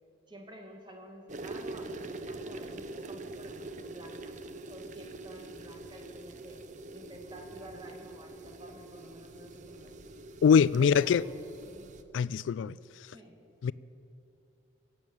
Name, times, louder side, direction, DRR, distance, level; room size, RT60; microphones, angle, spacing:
voice 1, 0.3-6.6 6.9-10.1 10.8-11.9 13.1-13.4, equal, 25° right, 1.7 m, -50 dB
sound 1, 1.3-12.0, right 2 dB, 40° right, 0.6 m, -44 dB
voice 2, 10.4-11.2 12.1-12.8 13.6-13.7, left 6 dB, 75° left, 0.3 m, -23 dB
17.0 x 7.3 x 8.8 m
head